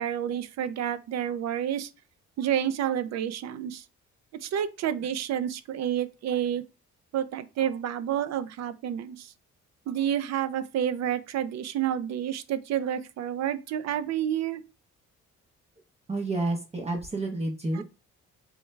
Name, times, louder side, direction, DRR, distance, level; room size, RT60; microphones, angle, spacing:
voice 1, 0.0-1.9 2.4-3.8 4.4-6.6 7.1-9.3 9.9-14.6 17.7-17.8, right 10 dB, 60° right, 0.5 m, -29 dB
voice 2, 16.1-17.8, right 2 dB, 20° right, 0.7 m, -29 dB
3.2 x 2.3 x 3.2 m
cardioid pair, 90°, 30 cm